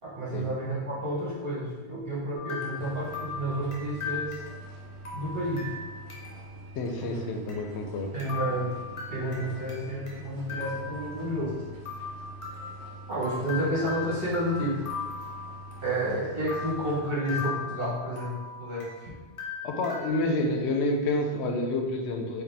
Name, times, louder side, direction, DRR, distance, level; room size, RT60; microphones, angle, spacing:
voice 1, 0.0-4.4 5.1-5.7 7.0-7.1 8.1-8.7 9.1-11.6 13.1-14.9 15.8-19.1, right 1 dB, 60° right, -8 dB, 1.3 m, -31 dB
sound 1, 2.3-6.5 6.8-6.9 7.5-7.6 8.2-10.2 10.5-11.5 11.8-16.0 16.5-19.0 19.4-20.1, left 5 dB, 35° left, 0.7 m, -38 dB
sound 2, 2.7-17.0, right 1 dB, 75° right, 0.9 m, -45 dB
voice 2, 6.8-8.1 19.6-22.4, left 2 dB, 85° left, 3 dB, 0.9 m, -28 dB
4.8 x 2.3 x 3.3 m, 1.3 s
omnidirectional pair, 1.1 m